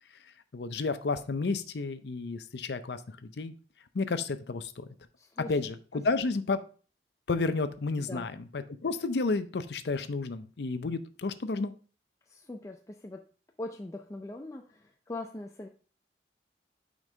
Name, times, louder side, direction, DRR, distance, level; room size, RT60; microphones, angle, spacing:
voice 1, 0.5-3.5 3.9-4.8 5.5-6.6 7.3-11.7, left 3 dB, 70° left, 11 dB, 0.6 m, -31 dB
voice 2, 5.2-5.6 8.0-8.3 12.3-13.3 13.6-15.7, left 2 dB, 15° left, 3 dB, 0.4 m, -41 dB
6.3 x 5.2 x 3.2 m, 0.39 s
head